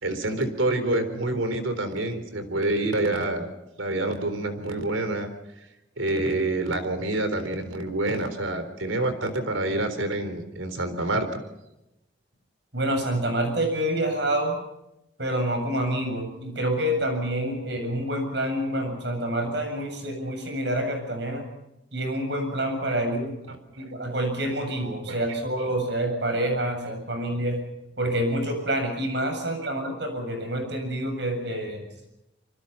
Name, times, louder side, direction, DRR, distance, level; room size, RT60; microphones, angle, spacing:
voice 1, 0.0-3.5 3.8-5.3 6.0-11.4 23.5-23.9 25.1-25.2, right 2 dB, 90° right, 10 dB, 3.9 m, -27 dB
voice 2, 12.7-14.6 15.2-21.4 21.9-23.4 23.8-27.6 28.0-31.8, right 1 dB, 60° right, 5 dB, 7.8 m, -27 dB
26.5 x 24.0 x 5.8 m, 0.88 s
head